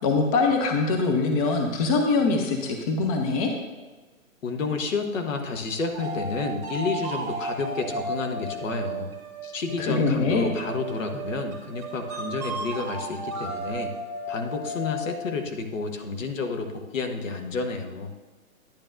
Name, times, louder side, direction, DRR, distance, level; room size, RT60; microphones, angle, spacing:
voice 1, 0.0-3.5 9.4-9.5 9.8-10.5, left 3 dB, 25° left, 3 dB, 0.6 m, -23 dB
voice 2, 4.4-9.1 9.5-13.9 14.3-18.1, left 4 dB, 65° left, 5 dB, 1.1 m, -30 dB
sound 1, 5.9-15.4, right 2 dB, 10° right, 1.4 m, -34 dB
10.0 x 9.0 x 2.6 m, 1.3 s
figure-of-eight pair, 130°, 42 cm